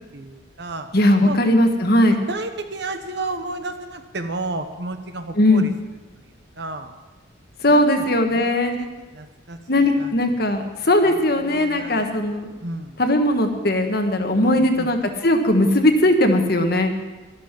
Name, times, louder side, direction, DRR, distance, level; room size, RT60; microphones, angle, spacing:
voice 1, 0.0-0.9 1.2-1.4 2.3-5.7 6.6-6.9 7.7-8.0 8.3-8.5 8.8-8.9 9.1-10.1 11.1-12.1 12.6-13.0 14.4-14.9, right 2 dB, 55° right, 8 dB, 1.1 m, -32 dB
voice 2, 0.9-2.2 5.3-5.7 7.6-8.8 9.7-12.5 13.0-15.0 15.2-16.9, left 1 dB, 50° left, 5 dB, 1.5 m, -18 dB
13.0 x 12.5 x 6.0 m, 1.2 s
head